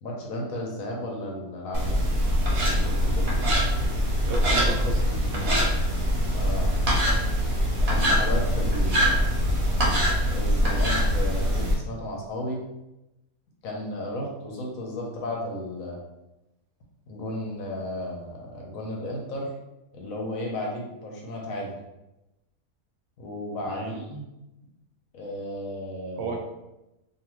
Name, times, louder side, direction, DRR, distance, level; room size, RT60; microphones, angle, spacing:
voice 1, 0.0-2.0 2.5-3.4 6.3-6.7 7.8-9.2 10.3-12.6 13.6-16.0 17.1-19.5 19.9-21.7 23.2-24.2 25.1-26.4, left 1 dB, 70° left, -1 dB, 1.0 m, -34 dB
sound 1, 1.7-11.7, equal, 50° right, 0.8 m, -23 dB
voice 2, 4.2-5.5 23.7-24.0 26.2-26.4, right 3 dB, 80° right, 2 dB, 1.1 m, -33 dB
2.7 x 2.5 x 3.0 m, 0.96 s
omnidirectional pair, 1.6 m